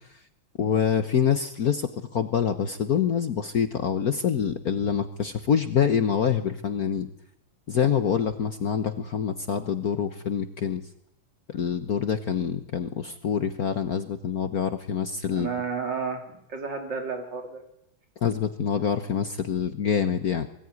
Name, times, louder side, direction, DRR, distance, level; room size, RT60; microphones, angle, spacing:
voice 1, 0.6-7.1 7.7-10.9 11.5-15.5 18.2-20.5, left 7 dB, 50° left, 9 dB, 1.3 m, -26 dB
voice 2, 15.3-17.6, right 5 dB, 55° right, 3 dB, 4.1 m, -32 dB
22.5 x 17.0 x 9.5 m, 0.83 s
omnidirectional pair, 2.4 m